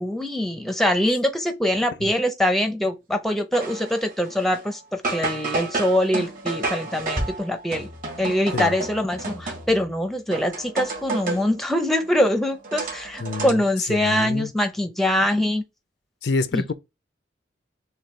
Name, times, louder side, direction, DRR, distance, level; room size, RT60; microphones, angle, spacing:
voice 1, 0.0-7.9 8.2-15.6 16.5-16.6, left 1 dB, ahead, 0.6 m, -23 dB
sound 1, 3.5-4.7 5.0-9.9 10.3-11.5 12.0-13.5, right 2 dB, 45° right, 2.1 m, -31 dB
voice 2, 13.2-13.6 13.9-14.5 16.2-16.7, left 3 dB, 65° left, 0.5 m, -27 dB
6.5 x 2.3 x 3.2 m
head